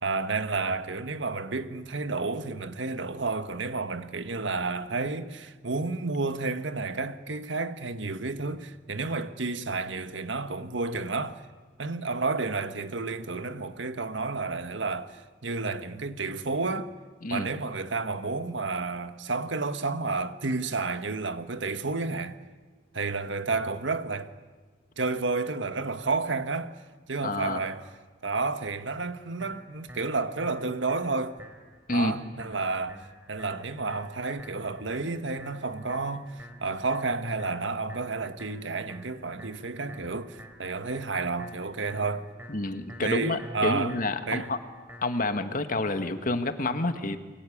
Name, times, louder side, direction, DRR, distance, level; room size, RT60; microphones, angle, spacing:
voice 1, 0.0-11.4 11.8-16.9 17.3-22.4 22.9-24.3 25.0-26.7 27.1-27.8 28.2-31.4 31.9-33.0 33.3-42.3 43.0-44.0 44.3-44.5, right 3 dB, 85° right, 1.5 m, -31 dB
voice 2, 27.2-27.6 31.9-32.2 42.5-44.6 45.0-47.2, left 2 dB, 45° left, 1.9 m, -28 dB
sound 1, 29.4-45.4, equal, 10° right, 4.2 m, -49 dB
29.0 x 24.0 x 8.7 m
head